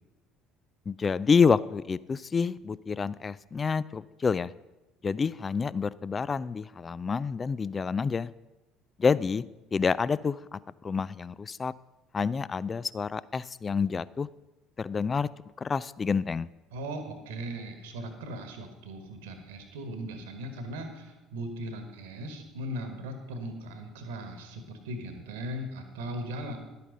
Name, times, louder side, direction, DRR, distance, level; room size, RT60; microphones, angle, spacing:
voice 1, 0.9-4.5 5.0-8.3 9.0-9.4 9.7-11.7 12.1-14.3 14.8-15.3 15.6-16.5, left 5 dB, 25° left, 19 dB, 0.3 m, -28 dB
voice 2, 16.7-26.6, right 1 dB, 65° right, 7 dB, 1.5 m, -38 dB
11.5 x 8.4 x 5.3 m, 1.0 s
figure-of-eight pair, 60°, 0 cm